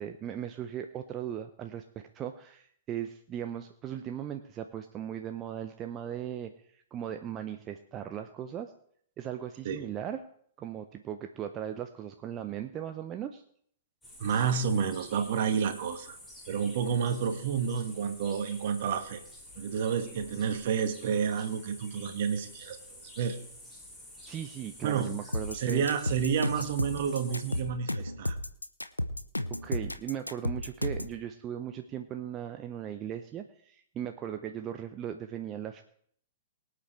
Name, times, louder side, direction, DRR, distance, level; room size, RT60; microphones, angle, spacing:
voice 1, 0.0-8.7 9.2-10.2 10.6-13.4 24.3-25.9 29.5-35.8, right 10 dB, 25° right, 7 dB, 0.7 m, -38 dB
sound 1, 14.0-27.6, left 1 dB, 10° left, 5.9 m, -50 dB
voice 2, 14.2-16.2 16.5-19.2 19.5-22.8 23.2-23.4 24.8-25.1 25.5-28.3, right 7 dB, 50° right, 7 dB, 1.7 m, -30 dB
sound 2, 25.3-31.2, left 1 dB, 90° left, 0.7 m, -33 dB
23.5 x 8.5 x 3.3 m, 0.64 s
figure-of-eight pair, 105°, 0 cm